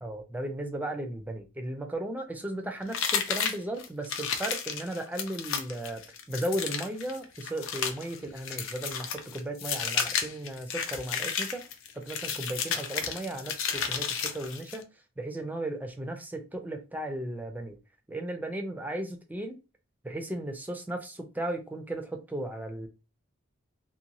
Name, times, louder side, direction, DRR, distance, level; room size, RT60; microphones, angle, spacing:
voice 1, 0.0-6.0 6.3-11.6 11.9-14.8 15.2-17.8 18.1-19.6 20.0-22.9, right 1 dB, 10° right, 0.5 m, -35 dB
sound 1, 2.9-14.8, left 7 dB, 65° left, 0.4 m, -32 dB
2.6 x 2.2 x 2.9 m
head